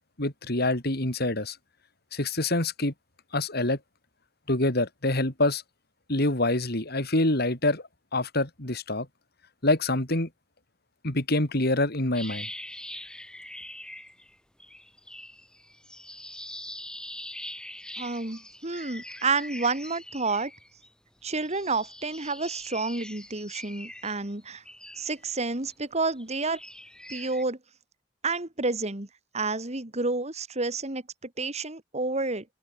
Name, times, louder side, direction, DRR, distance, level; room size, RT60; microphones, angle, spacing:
voice 1, 0.2-1.6 2.1-2.9 3.3-3.8 4.5-5.6 6.1-9.1 9.6-10.3 11.0-12.5, left 2 dB, 60° left, 4.2 m, -26 dB
sound 1, 12.1-14.3 14.6-20.9 21.3-25.7 26.2-27.4, left 1 dB, 5° left, 6.9 m, -43 dB
voice 2, 18.0-20.5 21.2-24.6 25.0-26.6 27.1-27.6 28.2-29.1 29.3-32.4, right 3 dB, 35° right, 2.7 m, -30 dB
head